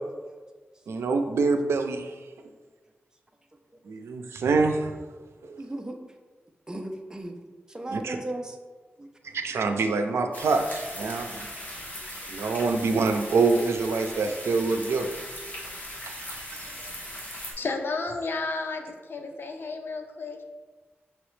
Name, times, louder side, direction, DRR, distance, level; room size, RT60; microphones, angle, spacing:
voice 1, 0.9-2.1 3.9-5.0 5.4-5.6 7.9-8.2 9.3-11.5 12.3-15.1 16.0-16.6, right 4 dB, 90° right, 6 dB, 0.4 m, -26 dB
voice 2, 5.6-6.0 6.7-7.4 7.7-8.6 9.0-9.1 12.4-12.5 16.8-16.9 19.3-19.4, right 1 dB, 15° right, 4 dB, 0.5 m, -36 dB
sound 1, 10.3-17.5, equal, 40° left, 1.2 m, -39 dB
voice 3, 17.6-20.4, left 3 dB, 55° left, 4 dB, 0.6 m, -32 dB
5.6 x 3.0 x 3.1 m, 1.4 s
wide cardioid pair, 100°, 4 cm